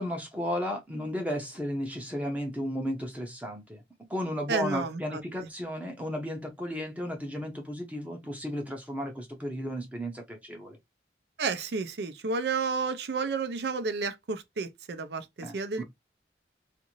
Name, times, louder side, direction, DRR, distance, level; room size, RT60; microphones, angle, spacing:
voice 1, 0.0-3.8 4.1-10.8 15.4-15.8, equal, 10° right, 0.6 m, -34 dB
voice 2, 4.5-5.5 11.4-15.8, right 4 dB, 70° right, 0.5 m, -31 dB
2.5 x 2.5 x 2.9 m
head